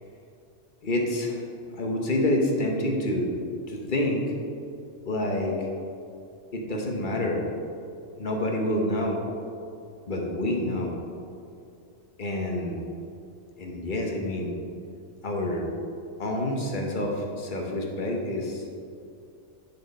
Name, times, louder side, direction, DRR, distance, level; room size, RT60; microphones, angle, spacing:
voice 1, 0.8-1.5 1.7-3.3 3.7-4.3 5.0-5.7 6.5-7.4 8.2-9.2 10.1-10.9 12.2-12.8 13.6-14.5 15.2-15.7 16.2-18.6, left 1 dB, 45° left, 0 dB, 1.1 m, -27 dB
9.8 x 4.4 x 4.1 m, 2.5 s
omnidirectional pair, 1.2 m